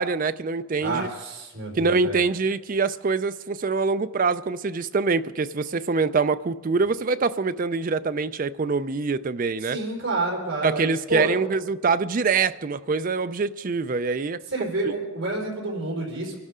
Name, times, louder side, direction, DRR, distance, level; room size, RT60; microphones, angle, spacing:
voice 1, 0.0-1.1 1.8-9.8 10.6-14.7, right 4 dB, 40° right, 0.4 m, -24 dB
voice 2, 0.8-2.2 9.6-11.3 14.5-16.3, right 2 dB, 60° right, 4.6 m, -29 dB
25.5 x 12.0 x 3.7 m
head